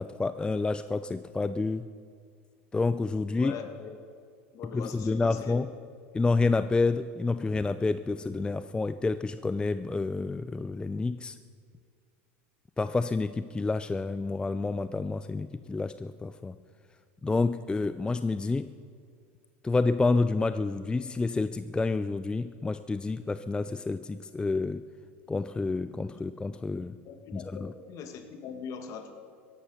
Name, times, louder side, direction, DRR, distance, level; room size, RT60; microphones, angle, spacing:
voice 1, 0.0-1.9 2.7-3.5 4.7-5.7 6.1-11.4 12.8-16.6 17.2-18.7 19.6-24.8 25.3-27.0 27.3-27.4, left 3 dB, 15° left, 13 dB, 0.4 m, -29 dB
voice 2, 3.3-4.0 4.5-5.7 26.1-26.2 27.1-29.1, left 7 dB, 50° left, 7 dB, 2.1 m, -41 dB
15.0 x 11.5 x 7.1 m, 2.2 s
hypercardioid pair, 90°, 7 cm